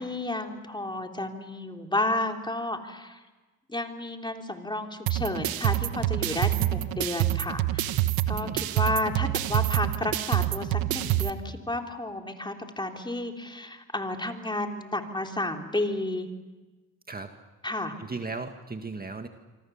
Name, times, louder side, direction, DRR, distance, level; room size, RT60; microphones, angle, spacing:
voice 1, 0.0-3.2 3.7-7.9 8.3-16.3 17.6-17.9, left 2 dB, 15° left, 3 dB, 3.5 m, -32 dB
sound 1, 5.1-11.3, right 14 dB, 85° right, 1.1 m, -27 dB
voice 2, 8.4-8.7 17.1-17.3 17.7-19.3, right 3 dB, 25° right, 6 dB, 1.8 m, -37 dB
26.5 x 24.5 x 7.3 m, 1.2 s
supercardioid pair, 70°, 35 cm